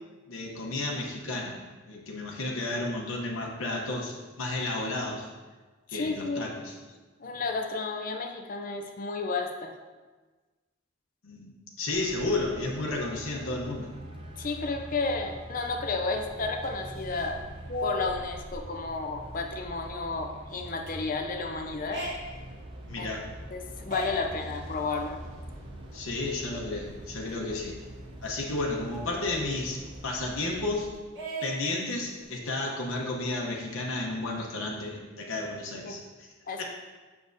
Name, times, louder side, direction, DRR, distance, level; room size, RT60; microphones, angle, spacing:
voice 1, 0.3-1.6 1.9-5.3 5.9-6.8 11.2-13.9 22.9-23.3 25.9-27.8 28.2-30.9 31.4-36.3 36.6-36.7, left 2 dB, 85° left, -2 dB, 0.9 m, -32 dB
voice 2, 5.9-6.5 7.2-9.7 14.4-17.4 17.7-22.0 23.0-23.1 23.5-25.2 35.8-35.9 36.5-36.6, left 3 dB, 40° left, 5 dB, 0.5 m, -32 dB
Traffic noise roadway noise, 11.9-30.9, right 1 dB, 25° right, 0.6 m, -46 dB
sound 1, 16.0-27.5 27.9-28.0 28.2-30.7 31.2-32.6, right 1 dB, 55° right, 1.8 m, -43 dB
sound 2, 22.0-30.8, right 1 dB, 90° right, 0.8 m, -47 dB
7.0 x 6.3 x 2.7 m, 1.3 s
head